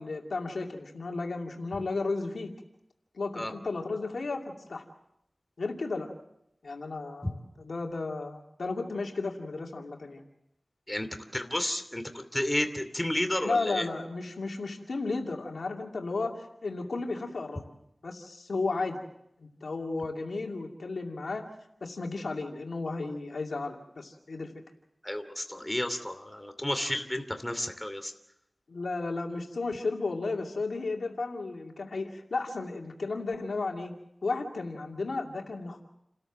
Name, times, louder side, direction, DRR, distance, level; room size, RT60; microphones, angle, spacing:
voice 1, 0.0-2.5 3.1-4.8 5.6-6.1 6.6-10.2 13.4-17.7 18.0-19.0 19.4-21.5 21.8-24.5 28.7-33.9 34.2-35.8, left 3 dB, 90° left, 2 dB, 2.5 m, -34 dB
voice 2, 10.9-13.8 25.0-28.1, left 1 dB, 15° left, 8 dB, 2.7 m, -32 dB
29.5 x 13.5 x 7.5 m, 0.81 s
wide cardioid pair, 45°, 0 cm